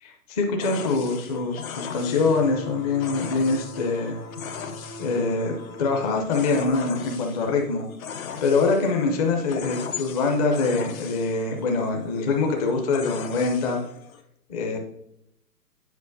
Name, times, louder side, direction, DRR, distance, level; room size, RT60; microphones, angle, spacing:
voice 1, 0.0-4.2 5.0-7.9 8.4-13.8 14.5-14.8, left 3 dB, 25° left, 2 dB, 0.7 m, -24 dB
sound 1, 0.6-14.2, left 7 dB, 60° left, 0.8 m, -39 dB
sound 2, 2.1-6.2, left 1 dB, 85° left, 0.9 m, -41 dB
8.2 x 5.3 x 2.6 m, 0.79 s
figure-of-eight pair, 125°, 48 cm